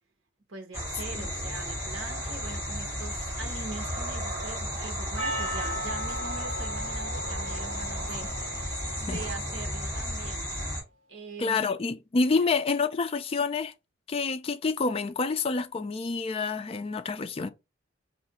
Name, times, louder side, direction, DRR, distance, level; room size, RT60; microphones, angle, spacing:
voice 1, 0.5-8.7 9.0-10.5 11.1-11.7 12.3-12.5, right 3 dB, 75° right, 0.9 m, -42 dB
sound 1, 0.7-10.8, equal, 15° right, 1.7 m, -34 dB
Percussion, 5.2-9.7, equal, 30° right, 1.2 m, -37 dB
voice 2, 11.4-13.7 14.1-17.5, left 4 dB, 30° left, 0.3 m, -28 dB
2.7 x 2.4 x 4.0 m
head